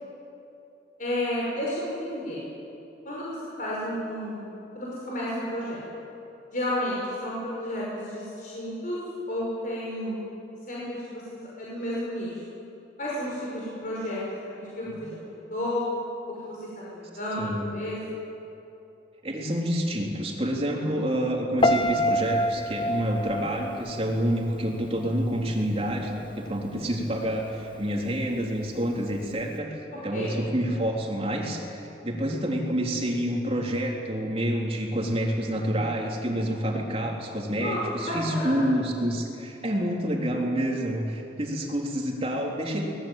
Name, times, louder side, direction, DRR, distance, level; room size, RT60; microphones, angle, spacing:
voice 1, 1.0-2.4 3.0-5.8 6.5-9.0 9.3-10.3 10.7-11.2 11.6-12.4 13.0-14.2 14.4-15.8 16.4-16.6 16.9-18.0 20.8-20.9 30.1-30.3 37.6-38.6, left 1 dB, 45° left, -6 dB, 5.7 m, -32 dB
voice 2, 17.4-17.7 19.2-29.8 30.0-43.0, equal, 30° right, 0 dB, 3.6 m, -28 dB
Piano, 21.6-24.7 25.0-25.4, equal, 25° left, 1.0 m, -26 dB
25.0 x 20.0 x 9.1 m, 2.9 s
head